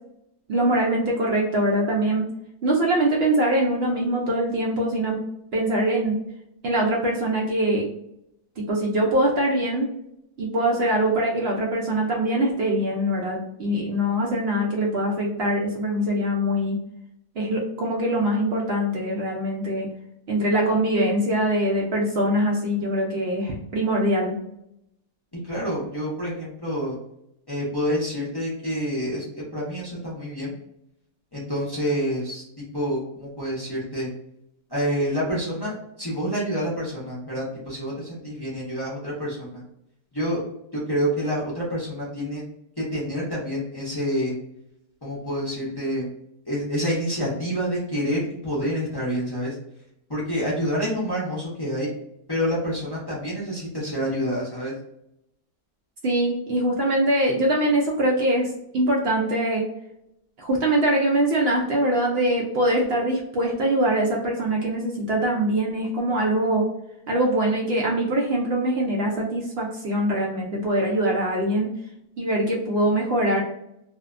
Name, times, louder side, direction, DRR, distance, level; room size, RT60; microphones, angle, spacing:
voice 1, 0.5-2.2 2.6-5.2 5.5-6.2 6.6-7.9 8.6-9.9 10.4-16.8 17.4-19.9 20.3-24.4 56.0-59.7 60.4-66.7 67.1-71.7 72.2-73.4, right 1 dB, 70° right, -2 dB, 0.5 m, -23 dB
voice 2, 25.5-27.0 27.5-30.5 31.3-34.1 34.7-39.6 40.1-40.4 40.7-42.4 42.8-44.3 45.0-46.1 46.5-49.5 50.1-51.9 52.3-54.7, equal, 30° left, -7 dB, 0.4 m, -27 dB
2.6 x 2.1 x 2.4 m, 0.79 s
omnidirectional pair, 1.7 m